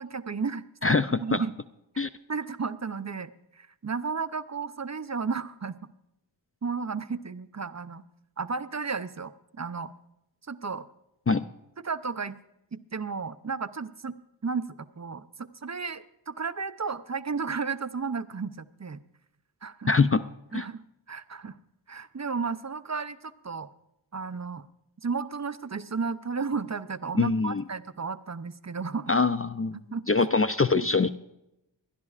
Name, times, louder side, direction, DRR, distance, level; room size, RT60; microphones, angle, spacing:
voice 1, 0.0-0.6 0.9-1.5 2.3-5.9 6.6-8.0 8.4-9.3 9.6-9.9 10.5-10.9 11.8-12.4 12.7-14.2 14.4-19.0 19.6-19.9 20.5-21.6 21.9-23.7 24.1-24.7 25.0-29.1 29.9-30.3, right 5 dB, 35° right, 12 dB, 0.6 m, -33 dB
voice 2, 19.9-20.2 20.5-20.6 27.2-27.6 29.1-29.8 30.1-31.1, left 4 dB, 30° left, 11 dB, 0.4 m, -23 dB
20.5 x 12.5 x 2.4 m, 0.85 s
wide cardioid pair, 45°, 47 cm